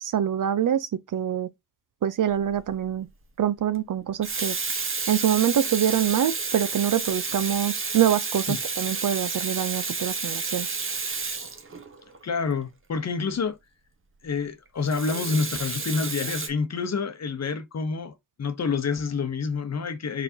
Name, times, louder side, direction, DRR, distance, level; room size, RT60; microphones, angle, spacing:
voice 1, 0.0-1.5 2.0-3.1 3.4-4.5 5.1-10.7, right 10 dB, 55° right, 0.6 m, -25 dB
Water tap faucet / Sink (filling or washing), 2.4-2.7 4.0-12.2 14.9-16.5, right 4 dB, 30° right, 1.0 m, -30 dB
voice 2, 12.2-13.6 14.2-20.2, left 5 dB, 45° left, 0.9 m, -28 dB
4.7 x 4.1 x 2.8 m
cardioid pair, 80°, 39 cm